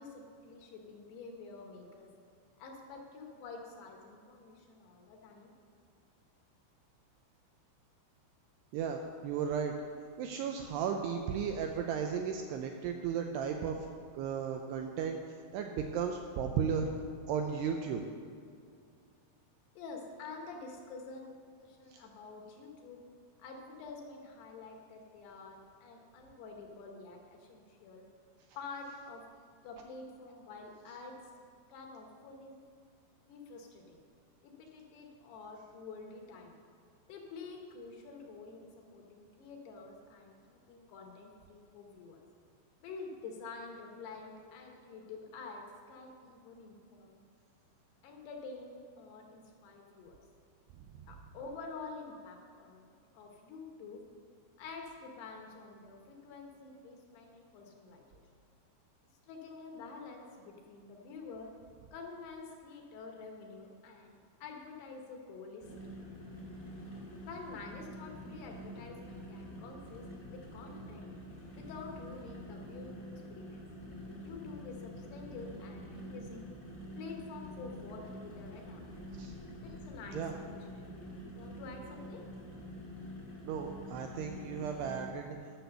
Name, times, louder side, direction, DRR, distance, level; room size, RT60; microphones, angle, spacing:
voice 1, 0.0-2.1 2.6-5.5 19.8-21.3 21.6-23.0 23.4-28.1 28.6-29.2 29.6-31.2 31.7-32.6 33.2-34.0 34.4-36.6 37.1-42.2 42.8-47.2 48.0-50.2 51.1-52.8 53.1-54.0 54.6-58.2 59.3-61.5 61.9-66.0 67.3-71.1 71.5-73.0 73.3-76.5 77.0-79.0 79.6-82.2, left 4 dB, 75° left, 2 dB, 2.7 m, -48 dB
voice 2, 8.7-9.8 10.2-13.8 14.1-15.2 15.5-16.9 17.3-18.0 21.9-22.0 79.2-79.3 80.1-80.3 83.4-85.4, right 7 dB, 85° right, 4 dB, 2.4 m, -35 dB
sound 1, 65.6-85.1, equal, 35° left, 0.5 m, -47 dB
10.5 x 6.1 x 6.8 m, 2.3 s
omnidirectional pair, 5.3 m